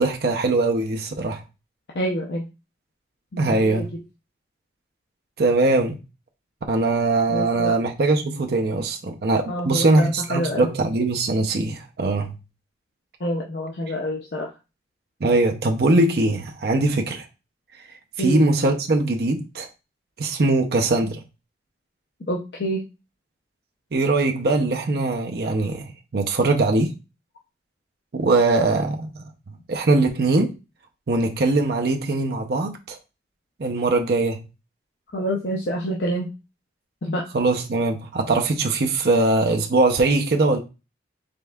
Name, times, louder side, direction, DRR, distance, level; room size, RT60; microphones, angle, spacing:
voice 1, 0.0-1.4 3.4-3.9 5.4-6.0 6.7-12.3 15.2-17.3 18.2-19.7 20.2-21.2 23.9-26.9 28.1-29.3 29.7-30.5 31.1-33.0 33.6-34.4 37.3-40.6, right 2 dB, 55° right, 0.5 m, -21 dB
voice 2, 1.9-2.5 3.3-3.9 7.3-7.8 9.5-10.7 13.2-14.5 18.2-18.4 22.3-22.8 35.1-36.3 37.0-37.3, equal, 65° left, 0.6 m, -27 dB
5.1 x 3.5 x 2.3 m
head